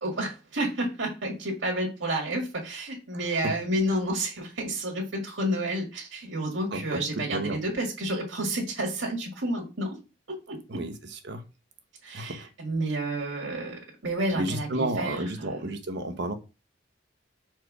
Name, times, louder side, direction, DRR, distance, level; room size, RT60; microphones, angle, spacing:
voice 1, 0.0-10.0 10.5-10.8 12.0-15.6, right 1 dB, 90° right, -1 dB, 2.0 m, -30 dB
voice 2, 3.1-3.5 6.7-7.6 10.7-11.4 12.1-12.5 14.3-16.3, right 1 dB, 65° right, 7 dB, 1.1 m, -32 dB
4.8 x 4.6 x 6.1 m, 0.29 s
head